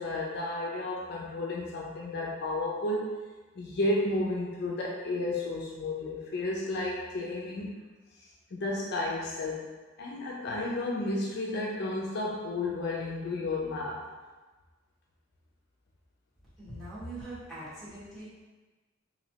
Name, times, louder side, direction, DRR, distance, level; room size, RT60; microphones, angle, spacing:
voice 1, 0.0-3.2 3.6-7.7 8.5-9.7 10.0-14.0, left 2 dB, 55° left, -3 dB, 0.4 m, -32 dB
voice 2, 16.6-18.3, right 1 dB, ahead, -12 dB, 1.4 m, -42 dB
3.1 x 2.6 x 2.8 m, 1.3 s
head